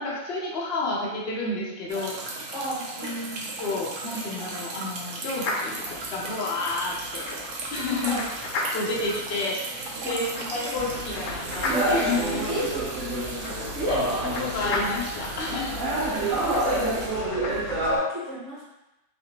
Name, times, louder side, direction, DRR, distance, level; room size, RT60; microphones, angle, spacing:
voice 1, 0.0-2.2 3.0-3.1 3.6-5.8 6.1-7.3 7.7-8.2 8.7-9.8 10.0-12.4 13.9-14.0 14.4-15.9, left 3 dB, 55° left, -3 dB, 0.8 m, -30 dB
sound 1, 1.9-17.1, right 2 dB, 90° right, 1.1 m, -36 dB
voice 2, 2.5-3.9 8.0-8.3 10.0-10.5 12.5-12.8 13.7-14.1 16.4-18.6, equal, 25° right, -8 dB, 0.9 m, -33 dB
sound 2, 5.4-17.8, left 3 dB, 80° left, 1.1 m, -36 dB
sound 3, 10.7-18.0, right 1 dB, 60° right, 1.2 m, -28 dB
3.2 x 2.7 x 2.9 m, 0.97 s
omnidirectional pair, 1.5 m